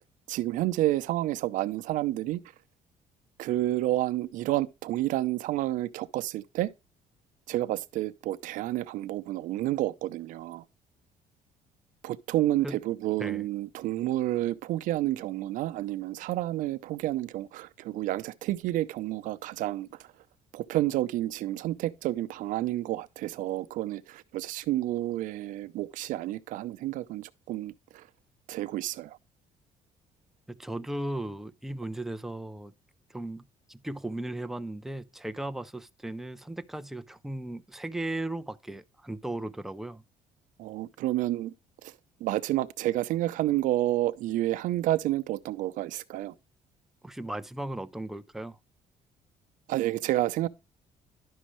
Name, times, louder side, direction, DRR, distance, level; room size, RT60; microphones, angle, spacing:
voice 1, 0.3-2.4 3.4-6.7 7.5-10.6 12.0-19.9 20.5-28.0 28.5-29.2 40.6-41.5 41.8-41.9 42.2-46.3 49.7-50.5, right 15 dB, 75° right, 0.6 m, -30 dB
voice 2, 30.5-32.7 33.1-40.0 47.0-48.6, right 1 dB, ahead, 0.4 m, -36 dB
11.0 x 6.3 x 3.1 m
cardioid pair, 160°, 14 cm